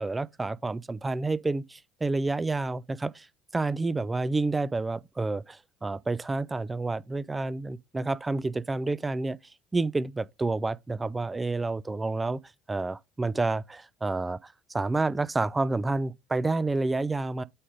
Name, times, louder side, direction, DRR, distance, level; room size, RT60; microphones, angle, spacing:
voice 1, 0.0-3.3 3.5-9.4 9.7-12.4 12.7-17.4, right 3 dB, 15° right, 0.4 m, -29 dB
8.3 x 3.7 x 5.1 m
figure-of-eight pair, 60°, 0 cm